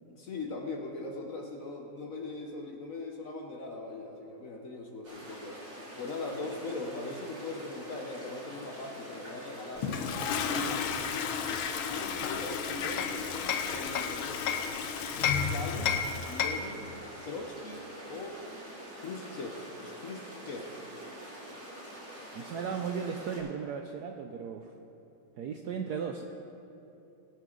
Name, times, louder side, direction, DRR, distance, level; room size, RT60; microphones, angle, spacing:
voice 1, 0.1-11.0 11.9-14.7 15.3-16.9 17.2-17.8 18.1-18.4 19.0-20.7, left 3 dB, 50° left, 1 dB, 1.1 m, -40 dB
sound 1, 5.0-23.4, equal, 40° right, 2.9 m, -46 dB
Toilet flush, 9.8-16.6, left 6 dB, 90° left, 1.6 m, -34 dB
Hammer, 12.2-14.7 15.2-16.8, left 7 dB, 70° left, 0.9 m, -32 dB
voice 2, 22.3-24.7 25.4-26.2, right 6 dB, 75° right, 5 dB, 0.9 m, -36 dB
19.5 x 9.2 x 3.9 m, 2.9 s
omnidirectional pair, 2.3 m